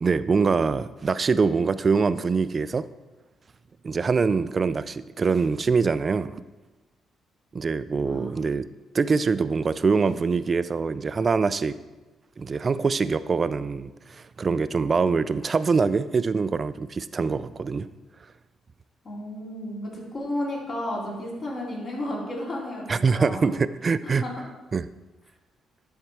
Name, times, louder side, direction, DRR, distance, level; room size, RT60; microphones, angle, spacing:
voice 1, 0.0-2.9 3.8-6.4 7.5-8.7 8.9-11.8 12.4-17.9 22.9-24.2 24.7-24.9, right 4 dB, 35° right, 14 dB, 0.3 m, -24 dB
voice 2, 8.0-8.4 19.0-23.5 24.0-24.3, left 1 dB, 50° left, -5 dB, 3.2 m, -33 dB
12.0 x 4.4 x 4.7 m, 1.2 s
cardioid pair, 90°, 0 cm